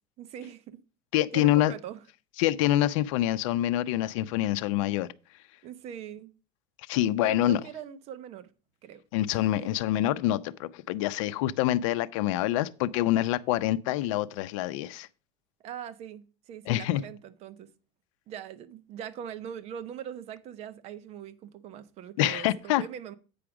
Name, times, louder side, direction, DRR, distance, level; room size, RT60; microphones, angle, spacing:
voice 1, 0.2-0.8 1.3-2.0 5.6-6.3 7.2-8.5 8.8-9.0 9.3-9.7 15.6-17.7 18.3-23.1, right 9 dB, 40° right, 0.8 m, -41 dB
voice 2, 1.1-1.7 2.4-5.1 6.9-7.6 9.1-15.1 16.7-17.0 22.2-22.8, left 14 dB, 80° left, 0.6 m, -26 dB
8.7 x 5.0 x 5.9 m
cardioid pair, 155°, 16 cm